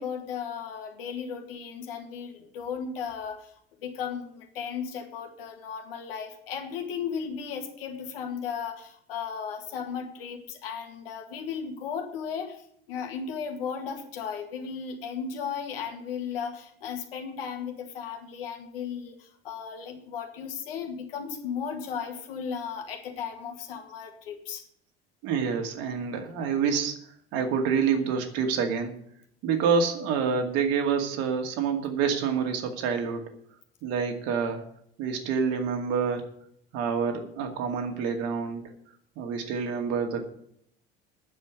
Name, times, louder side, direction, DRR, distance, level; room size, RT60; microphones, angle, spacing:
voice 1, 0.0-3.5 3.8-24.6, left 7 dB, 65° left, 4 dB, 2.0 m, -35 dB
voice 2, 25.2-27.0 27.3-28.9 29.4-33.2 33.8-34.6 35.0-36.3 36.7-38.7 39.2-40.2, right 6 dB, 55° right, 4 dB, 2.3 m, -27 dB
10.0 x 7.4 x 9.4 m, 0.69 s
figure-of-eight pair, 65°, 30 cm